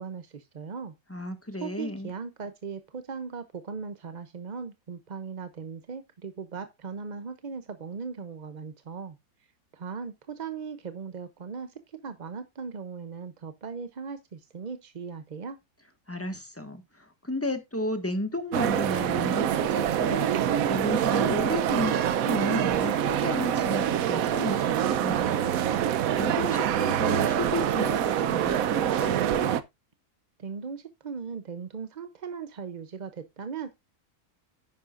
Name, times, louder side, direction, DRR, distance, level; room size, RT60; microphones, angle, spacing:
voice 1, 0.0-0.9 1.6-9.2 9.7-15.6 30.4-33.8, right 5 dB, 45° right, 0.6 m, -38 dB
voice 2, 1.1-2.1 16.1-20.3 20.7-25.5 25.8-29.2, left 1 dB, 10° left, 1.4 m, -33 dB
sound 1, 18.5-29.6, right 10 dB, 70° right, 1.1 m, -25 dB
10.5 x 9.5 x 2.5 m
omnidirectional pair, 1.6 m